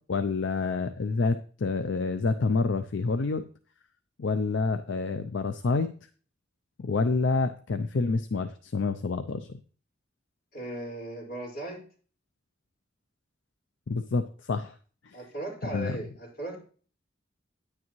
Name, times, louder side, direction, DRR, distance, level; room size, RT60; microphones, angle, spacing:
voice 1, 0.0-3.5 4.2-5.9 6.8-9.6 13.9-14.8 15.0-15.2 15.6-16.0, left 4 dB, 70° left, 10 dB, 0.5 m, -28 dB
voice 2, 10.5-11.8 15.1-16.6, right 2 dB, 50° left, -4 dB, 4.9 m, -37 dB
9.7 x 9.6 x 3.1 m, 0.41 s
head